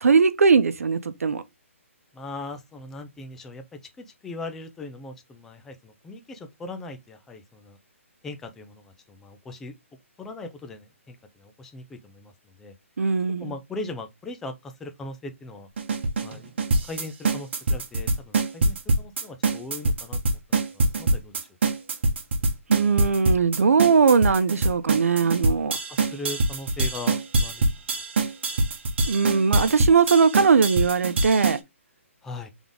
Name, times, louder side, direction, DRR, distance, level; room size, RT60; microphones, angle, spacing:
voice 1, 0.0-1.4 13.0-13.5 22.7-25.8 29.1-31.6, right 5 dB, 85° right, 0.7 m, -20 dB
voice 2, 2.1-7.8 8.2-9.7 10.2-12.7 13.4-15.7 16.2-16.5 16.8-21.4 25.9-27.7 32.2-32.5, left 2 dB, 5° left, 0.4 m, -39 dB
sound 1, 15.8-31.6, right 2 dB, 50° right, 1.2 m, -24 dB
3.9 x 3.6 x 3.4 m
hypercardioid pair, 170°, 8 cm